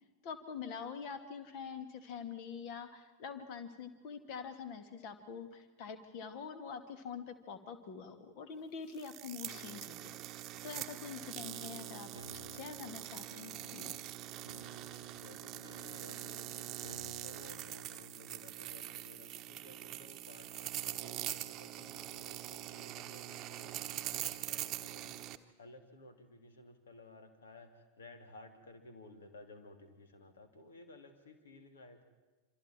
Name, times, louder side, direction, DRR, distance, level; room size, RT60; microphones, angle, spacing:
voice 1, 0.2-10.2 10.6-13.9, left 6 dB, 45° left, 8 dB, 2.5 m, -45 dB
sound 1, 8.9-25.4, right 13 dB, 35° right, 1.1 m, -43 dB
sound 2, 11.2-17.7, left 2 dB, 85° left, 1.3 m, -57 dB
voice 2, 15.1-25.3 25.6-32.0, left 2 dB, 65° left, 6 dB, 3.0 m, -56 dB
27.5 x 26.0 x 4.6 m, 1.2 s
figure-of-eight pair, 90°, 0 cm